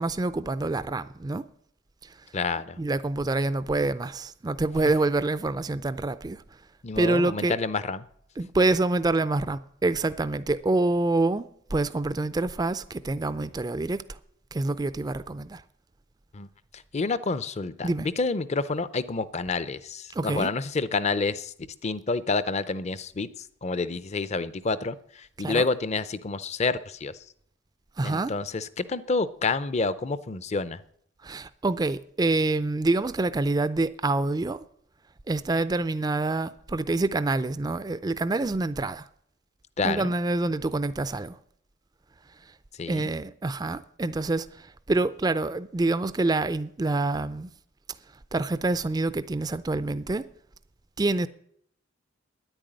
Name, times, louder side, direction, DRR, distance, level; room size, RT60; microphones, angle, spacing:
voice 1, 0.0-1.4 2.8-6.4 7.0-7.5 8.4-14.2 14.5-15.6 17.8-18.1 20.1-20.5 25.4-25.6 28.0-28.3 31.2-34.6 35.3-39.1 39.8-41.4 42.9-47.5 48.3-50.3 51.0-51.3, right 2 dB, 20° right, 0.4 m, -26 dB
voice 2, 2.3-2.8 6.8-8.1 16.3-16.5 16.9-21.5 21.8-23.3 23.6-27.1 28.0-30.8 39.8-40.1 42.8-43.1, left 4 dB, 35° left, 0.6 m, -28 dB
10.0 x 9.0 x 8.8 m
head